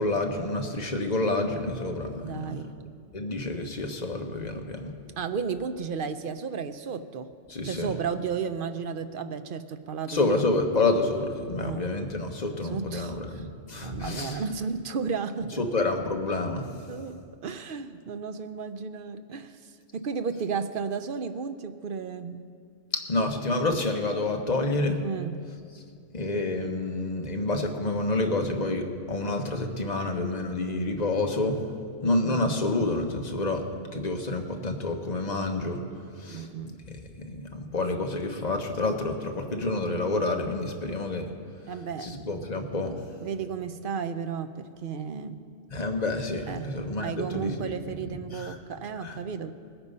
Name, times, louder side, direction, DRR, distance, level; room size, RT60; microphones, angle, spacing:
voice 1, 0.0-2.6 3.1-5.0 7.5-7.9 10.1-14.4 15.6-16.7 22.9-25.0 26.1-31.6 32.0-33.6 33.9-35.8 36.2-36.5 36.9-41.3 42.0-43.0 45.7-47.7 48.3-48.5 49.0-49.2, left 2 dB, 35° left, 3 dB, 1.1 m, -28 dB
voice 2, 2.2-2.7 5.2-7.3 7.6-10.4 11.6-11.9 12.5-13.5 13.8-15.6 16.9-22.5 25.0-25.4 32.2-32.4 36.3-36.8 41.7-42.1 43.2-45.4 46.5-46.7 47.0-49.5, right 6 dB, 55° right, 10 dB, 0.7 m, -33 dB
19.5 x 8.8 x 5.4 m, 2.2 s
omnidirectional pair, 1.2 m